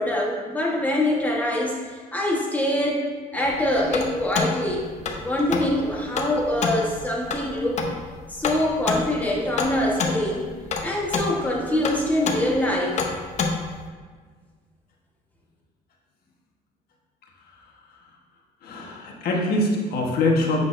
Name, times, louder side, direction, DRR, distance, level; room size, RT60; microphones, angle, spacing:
voice 1, 0.0-1.8 2.1-4.8 5.1-7.8 8.3-10.5 10.8-13.0, left 1 dB, 10° left, -3 dB, 1.3 m, -24 dB
sound 1, 3.4-13.9, left 4 dB, 45° left, 0.7 m, -29 dB
voice 2, 18.6-20.6, left 2 dB, 70° left, 0 dB, 1.3 m, -23 dB
7.8 x 6.1 x 2.6 m, 1.5 s
cardioid pair, 130°, 16 cm